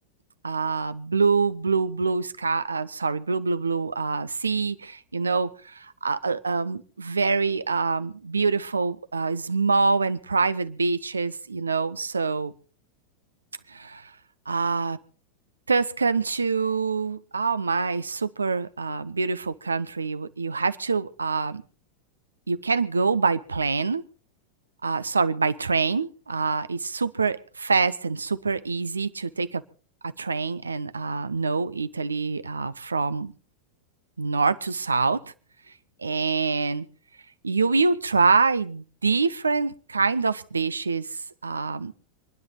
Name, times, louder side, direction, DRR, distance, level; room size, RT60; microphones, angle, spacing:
voice 1, 0.4-12.5 13.7-14.1 14.5-15.0 15.7-21.6 22.5-24.0 24.8-29.6 30.0-33.3 34.2-35.3 36.0-36.9 37.4-41.9, right 4 dB, 75° right, 14 dB, 0.8 m, -25 dB
27.5 x 10.5 x 4.0 m, 0.38 s
figure-of-eight pair, 90°, 0 cm